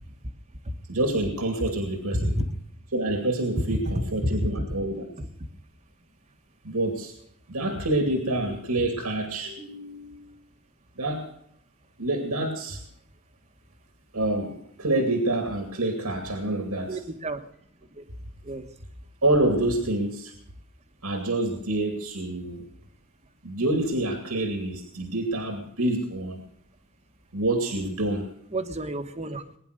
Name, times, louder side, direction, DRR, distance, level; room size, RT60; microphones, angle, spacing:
voice 1, 0.9-2.4 2.9-5.0 6.6-7.1 7.5-10.3 11.0-11.3 12.0-12.8 14.1-17.0 19.2-20.3 21.0-22.6 23.4-26.4 27.3-28.3, right 1 dB, 80° right, 4 dB, 2.4 m, -27 dB
voice 2, 16.9-17.4 18.5-18.6 28.5-29.4, right 1 dB, 30° right, 8 dB, 1.4 m, -29 dB
21.5 x 10.5 x 6.6 m, 0.70 s
head